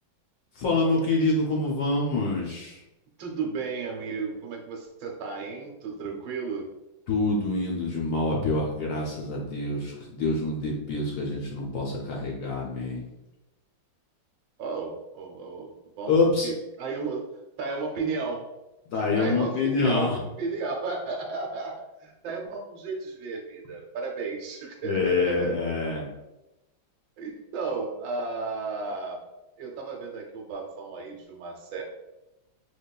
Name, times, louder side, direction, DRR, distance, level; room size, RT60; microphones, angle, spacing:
voice 1, 0.5-2.8 7.1-13.0 16.1-16.5 18.9-20.2 24.8-26.1, left 3 dB, 70° left, -2 dB, 1.0 m, -26 dB
voice 2, 3.2-6.7 14.6-15.7 16.0-17.3 17.6-18.5 19.1-25.6 27.2-29.3 29.6-31.8, right 4 dB, 75° right, 1 dB, 1.3 m, -33 dB
5.0 x 2.2 x 2.2 m, 0.96 s
omnidirectional pair, 2.0 m